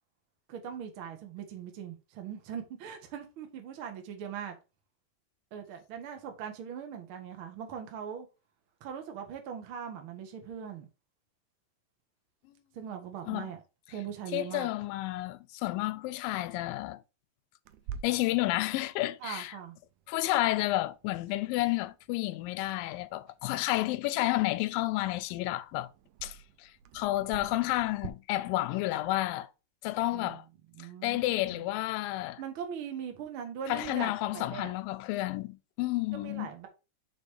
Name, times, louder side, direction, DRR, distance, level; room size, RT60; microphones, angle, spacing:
voice 1, 0.5-4.5 5.5-8.3 8.8-10.9 12.7-13.6 13.9-14.7 19.2-19.8 30.1-30.4 30.7-31.2 31.4-31.6 32.4-34.7 36.1-36.7, right 8 dB, 65° right, 1.3 m, -40 dB
voice 2, 14.3-17.0 18.0-19.6 20.1-25.9 26.2-29.5 29.8-30.4 30.8-32.4 33.7-36.5, left 17 dB, 80° left, 2.2 m, -31 dB
Clock, 17.7-28.1, right 8 dB, 90° right, 1.7 m, -50 dB
5.1 x 4.8 x 4.8 m
omnidirectional pair, 4.2 m